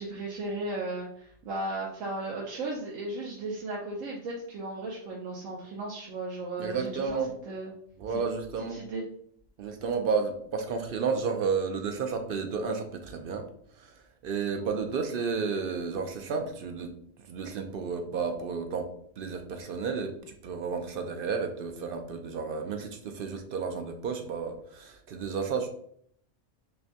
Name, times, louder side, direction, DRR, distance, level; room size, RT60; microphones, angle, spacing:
voice 1, 0.0-7.2 7.5-7.7 8.7-9.1, right 2 dB, 80° right, -3 dB, 1.1 m, -35 dB
voice 2, 6.6-7.3 8.0-8.8 9.6-13.5 13.7-16.9 17.2-18.9 19.2-25.7, right 5 dB, 65° right, 5 dB, 0.5 m, -32 dB
5.5 x 2.2 x 2.7 m, 0.65 s
omnidirectional pair, 1.3 m